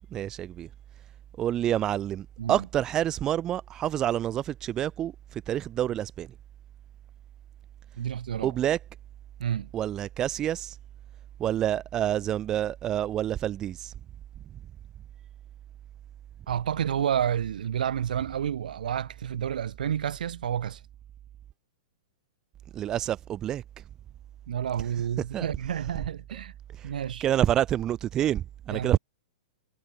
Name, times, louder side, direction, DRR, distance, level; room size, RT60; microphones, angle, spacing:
voice 1, 0.1-0.7 1.4-6.3 8.4-8.8 9.7-10.7 11.4-13.9 22.7-23.6 25.3-25.5 26.8-26.9 27.2-29.0, right 11 dB, 15° right, 0.3 m, -28 dB
voice 2, 8.0-8.5 9.4-9.7 16.5-20.8 24.5-26.5 26.8-27.2 28.7-29.0, right 9 dB, 85° right, 1.0 m, -30 dB
sound 1, 18.3-19.7, right 11 dB, 55° right, 5.2 m, -54 dB
supercardioid pair, 180°, 4 cm